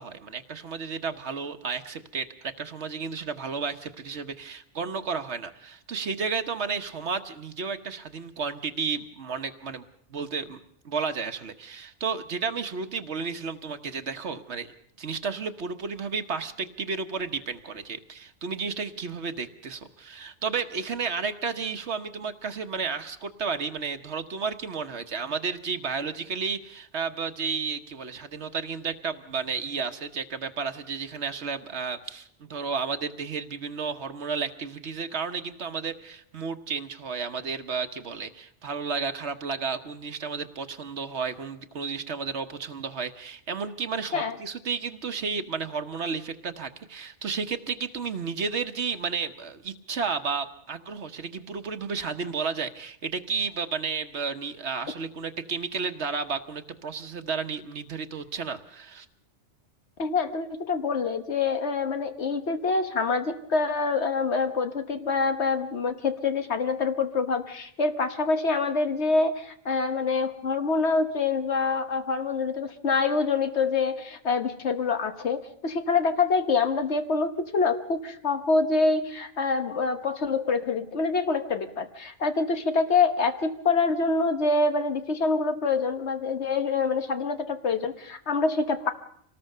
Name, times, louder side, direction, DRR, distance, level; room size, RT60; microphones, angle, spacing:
voice 1, 0.0-9.8 10.1-10.6 10.8-14.7 15.0-59.1, right 5 dB, 70° right, 8 dB, 1.3 m, -32 dB
voice 2, 60.0-88.9, left 4 dB, 70° left, 9 dB, 1.4 m, -26 dB
25.5 x 19.0 x 6.6 m, 0.69 s
omnidirectional pair, 1.2 m